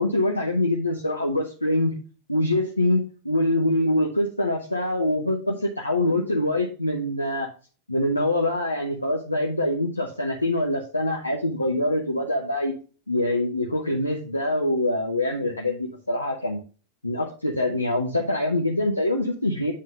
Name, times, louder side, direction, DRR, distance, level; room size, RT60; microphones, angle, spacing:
voice 1, 0.0-1.9 2.3-7.5 7.9-12.7 13.1-16.6 17.0-19.7, left 1 dB, 85° left, 0 dB, 0.9 m, -24 dB
8.6 x 3.8 x 5.0 m, 0.37 s
figure-of-eight pair, 85°, 0 cm